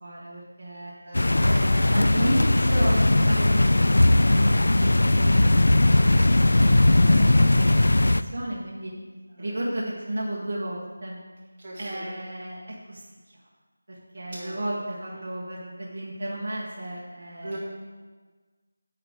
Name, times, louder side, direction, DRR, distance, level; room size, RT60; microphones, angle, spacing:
voice 1, 0.0-0.9 1.5-8.9 9.4-11.2 11.8-13.0 14.1-17.5, right 1 dB, 40° right, -5 dB, 1.3 m, -33 dB
sound 1, 1.1-8.2, left 1 dB, 75° left, 0.4 m, -19 dB
voice 2, 11.6-12.1 14.3-14.6 17.4-17.6, right 1 dB, 20° right, -10 dB, 2.3 m, -39 dB
8.7 x 4.0 x 6.4 m, 1.4 s
figure-of-eight pair, 180°, 0 cm